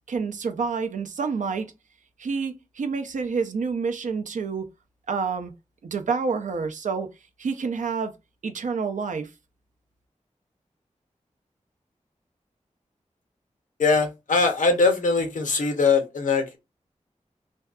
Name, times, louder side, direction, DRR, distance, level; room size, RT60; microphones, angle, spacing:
voice 1, 0.1-1.7 2.2-4.6 5.1-5.5 5.8-7.1 7.4-8.1 8.4-9.3, right 5 dB, 75° right, 0.4 m, -28 dB
voice 2, 13.8-16.6, left 4 dB, 85° left, 0.6 m, -21 dB
2.6 x 2.3 x 2.3 m
cardioid pair, 45°, 13 cm